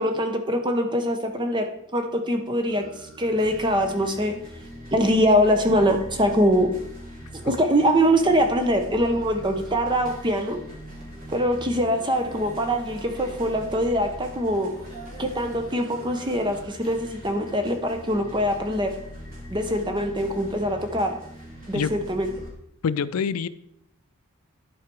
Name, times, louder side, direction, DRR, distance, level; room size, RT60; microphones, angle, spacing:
voice 1, 0.0-2.9 3.2-4.3 4.9-6.7 7.3-10.6 11.3-14.7 15.2-18.9 19.5-21.1 21.7-22.3, equal, 20° right, 5 dB, 0.8 m, -23 dB
sound 1, 2.7-22.5, equal, 40° right, 2.9 m, -41 dB
voice 2, 22.8-23.5, left 6 dB, 85° left, 16 dB, 0.4 m, -25 dB
11.5 x 4.8 x 4.6 m, 0.75 s
head